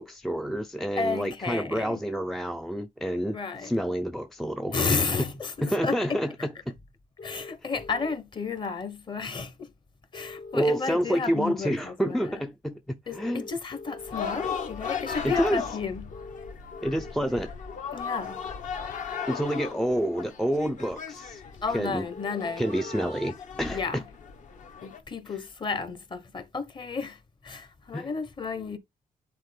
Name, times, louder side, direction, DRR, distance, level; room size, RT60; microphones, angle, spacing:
voice 1, 0.0-5.3 5.6-6.8 10.5-13.5 15.2-15.6 16.8-17.5 19.3-21.4 21.7-22.1 22.6-24.0 27.9-28.1, equal, ahead, 0.3 m, -28 dB
voice 2, 1.0-2.0 3.3-3.7 4.7-6.2 7.2-9.7 10.1-12.4 13.1-16.2 17.9-18.4 21.6-22.7 23.7-24.0 24.8-28.8, left 4 dB, 30° left, 1.0 m, -32 dB
sound 1, 7.2-8.1 10.1-11.1 13.1-14.1 16.1-17.1 19.1-20.1 22.1-23.1, left 3 dB, 80° left, 2.6 m, -43 dB
sound 2, 14.0-25.0, left 6 dB, 55° left, 1.1 m, -37 dB
9.2 x 4.2 x 3.3 m
wide cardioid pair, 165°, 15 cm